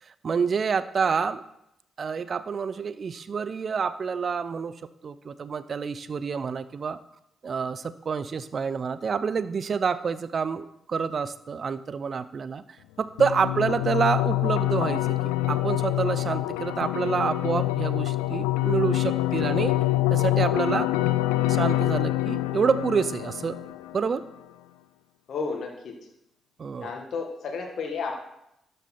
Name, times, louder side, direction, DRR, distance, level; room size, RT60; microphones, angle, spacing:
voice 1, 0.2-1.4 2.0-4.8 5.0-7.0 7.4-12.6 13.0-19.7 20.1-20.9 21.5-23.6 23.9-24.2 26.6-26.9, right 6 dB, 50° right, 15 dB, 0.6 m, -28 dB
sound 1, 13.2-24.2, left 16 dB, 80° left, 0.3 m, -26 dB
voice 2, 25.3-26.0 26.8-28.1, left 5 dB, 60° left, 2 dB, 1.6 m, -32 dB
12.5 x 6.7 x 4.3 m, 0.83 s
hypercardioid pair, 40°, 0 cm